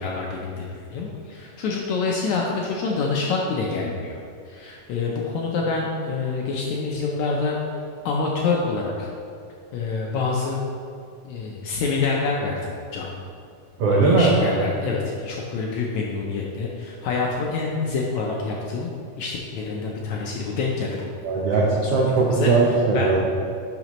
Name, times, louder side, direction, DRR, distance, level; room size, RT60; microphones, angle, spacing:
voice 1, 0.0-4.2 4.5-7.5 8.0-9.1 9.7-10.6 11.2-12.6 12.9-13.1 13.9-18.9 19.2-21.1 21.5-22.0 22.3-22.5 22.9-23.1, left 4 dB, 75° left, -2 dB, 1.7 m, -26 dB
voice 2, 13.8-14.6 21.2-23.2, right 3 dB, 90° right, -3 dB, 1.3 m, -19 dB
11.0 x 6.0 x 3.0 m, 2.3 s
omnidirectional pair, 3.9 m